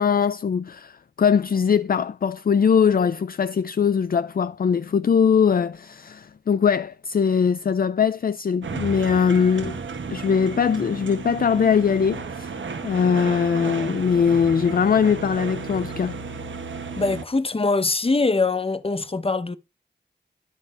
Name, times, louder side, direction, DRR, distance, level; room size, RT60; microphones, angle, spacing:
voice 1, 0.0-9.8 10.1-16.2, left 6 dB, 50° left, 0.4 m, -21 dB
sound 1, 8.6-17.3, right 4 dB, 90° right, 1.1 m, -33 dB
voice 2, 17.0-19.6, left 3 dB, 30° left, 0.8 m, -23 dB
10.0 x 3.9 x 5.5 m
cardioid pair, 45°, 19 cm